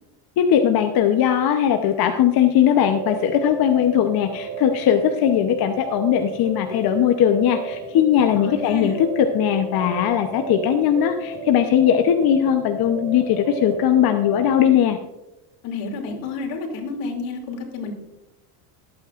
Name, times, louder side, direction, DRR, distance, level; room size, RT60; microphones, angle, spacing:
voice 1, 0.4-15.0, left 9 dB, 45° left, 6 dB, 0.9 m, -19 dB
sound 1, 2.7-14.6, right 3 dB, 40° right, 4.1 m, -33 dB
voice 2, 8.4-9.0 15.6-17.9, left 3 dB, 75° left, 2 dB, 2.9 m, -30 dB
22.0 x 8.8 x 2.5 m, 1.0 s
supercardioid pair, 115°, 49 cm